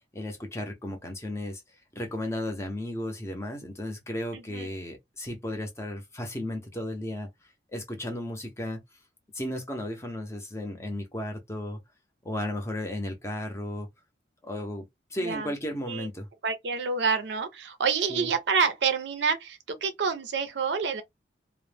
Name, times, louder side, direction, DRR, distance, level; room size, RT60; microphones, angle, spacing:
voice 1, 0.1-1.6 2.0-7.3 7.7-8.8 9.3-11.8 12.2-13.9 14.4-16.3 18.1-18.3, left 1 dB, 15° left, 0.6 m, -34 dB
voice 2, 4.3-4.7 15.2-15.5 15.9-16.1 16.4-21.0, right 5 dB, 65° right, 0.5 m, -28 dB
2.1 x 2.1 x 3.3 m
head